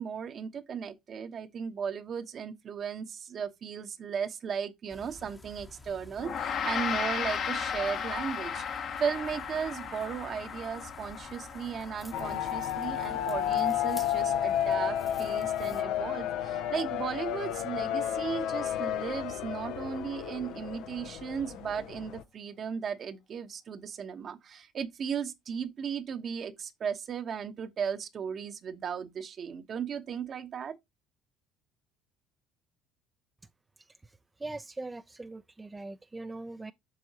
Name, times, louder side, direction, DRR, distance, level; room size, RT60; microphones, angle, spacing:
voice 1, 0.0-30.8, right 7 dB, 50° right, 1.0 m, -36 dB
sound 1, 4.9-15.8, left 2 dB, 20° left, 0.9 m, -51 dB
Gong, 6.2-15.7, left 7 dB, 55° left, 1.2 m, -36 dB
sound 2, 12.1-22.2, left 11 dB, 70° left, 0.6 m, -32 dB
voice 2, 34.4-36.7, right 2 dB, 15° right, 0.5 m, -41 dB
7.6 x 6.3 x 2.9 m
supercardioid pair, 80°, 0 cm